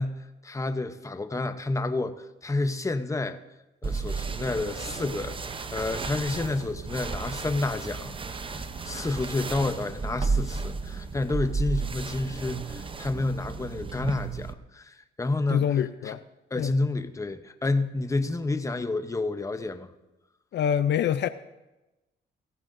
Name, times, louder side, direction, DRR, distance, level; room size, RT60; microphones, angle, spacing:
voice 1, 0.0-3.4 3.8-15.7 16.0-16.2 16.5-19.9, left 2 dB, 15° left, 9 dB, 0.8 m, -30 dB
sound 1, 3.8-14.5, right 4 dB, 25° right, 0.7 m, -33 dB
voice 2, 15.5-16.2 16.6-16.7 20.5-21.3, left 9 dB, 60° left, 12 dB, 0.5 m, -25 dB
18.0 x 14.5 x 2.6 m, 1.0 s
cardioid pair, 90°, 20 cm